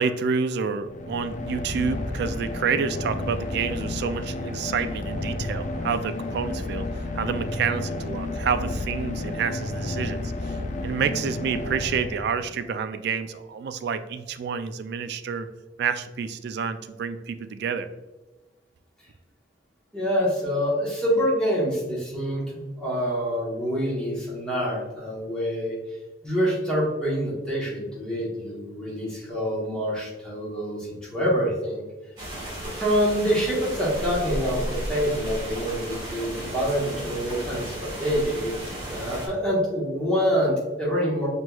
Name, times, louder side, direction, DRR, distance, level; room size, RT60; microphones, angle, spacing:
voice 1, 0.0-6.9 7.1-10.6 10.8-15.5 15.8-17.9, right 6 dB, 65° right, 11 dB, 0.3 m, -28 dB
sound 1, 0.8-12.7, left 2 dB, 40° left, 0.4 m, -31 dB
voice 2, 19.9-25.8 26.2-31.8 32.8-38.5 38.9-41.3, equal, 5° left, -6 dB, 1.2 m, -26 dB
sound 2, 32.2-39.3, right 1 dB, 25° right, 1.4 m, -34 dB
5.9 x 2.9 x 2.3 m, 1.2 s
head